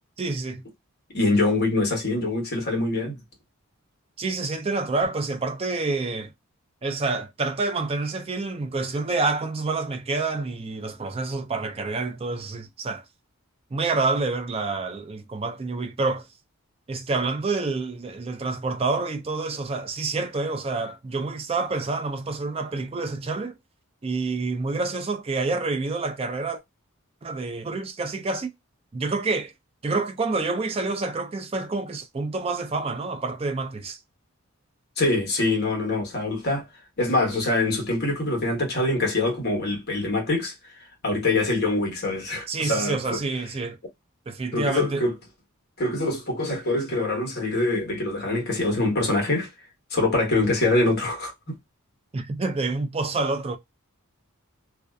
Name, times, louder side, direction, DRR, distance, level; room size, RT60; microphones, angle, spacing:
voice 1, 0.2-0.6 4.2-6.3 6.8-13.0 13.7-16.3 16.9-23.5 24.0-26.6 27.2-28.5 28.9-29.5 29.8-34.0 42.5-43.8 44.3-45.0 52.1-53.6, right 3 dB, 25° right, 0.4 m, -28 dB
voice 2, 1.1-3.2 35.0-36.6 37.0-40.5 41.0-43.2 44.5-45.1 45.8-49.5 49.9-51.6, left 2 dB, 45° left, 1.0 m, -24 dB
2.5 x 2.3 x 2.2 m
head